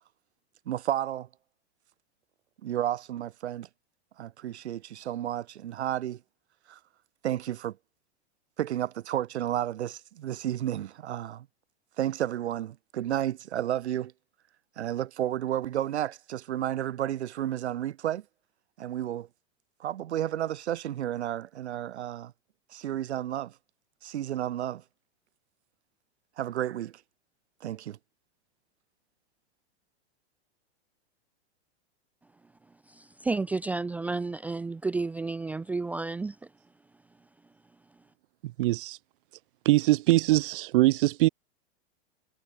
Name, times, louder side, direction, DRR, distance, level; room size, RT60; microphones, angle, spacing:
voice 1, 0.7-1.3 2.6-3.7 4.2-6.2 6.7-6.8 7.2-7.8 8.6-11.5 12.0-14.1 14.8-18.2 18.8-19.3 19.8-22.3 22.7-23.5 24.0-24.8 26.4-26.9 27.6-28.0, right 11 dB, 90° right, 2.7 m, -32 dB
voice 2, 32.9-36.4, right 3 dB, 5° right, 0.5 m, -31 dB
voice 3, 38.6-39.0 39.6-41.3, right 17 dB, 55° right, 1.5 m, -22 dB
supercardioid pair, 165°, 33 cm